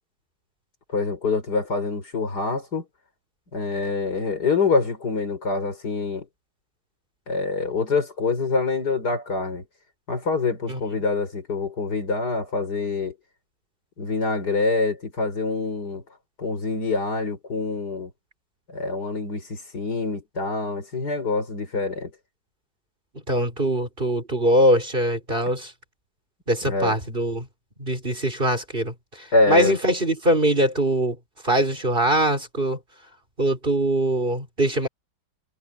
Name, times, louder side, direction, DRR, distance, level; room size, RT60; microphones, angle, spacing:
voice 1, 0.9-2.8 3.5-6.3 7.3-9.6 10.1-13.1 14.0-16.0 16.4-18.1 18.7-22.1 26.6-26.9 29.3-29.8, left 3 dB, 65° left, 5.0 m, -25 dB
voice 2, 23.3-25.7 26.5-27.5 27.8-31.2 31.4-32.8 33.4-34.9, right 1 dB, 30° right, 4.7 m, -22 dB
omnidirectional pair, 1.9 m